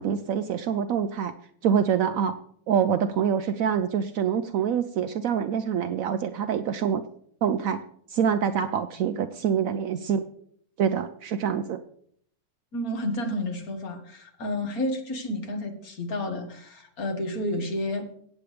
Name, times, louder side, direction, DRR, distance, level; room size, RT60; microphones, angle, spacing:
voice 1, 0.0-1.3 1.6-2.4 2.7-7.0 7.4-7.8 8.1-10.3 10.8-11.8, right 8 dB, 70° right, 9 dB, 0.9 m, -25 dB
voice 2, 12.7-18.1, left 1 dB, 70° left, 4 dB, 2.0 m, -30 dB
15.5 x 8.3 x 3.3 m, 0.63 s
omnidirectional pair, 1.6 m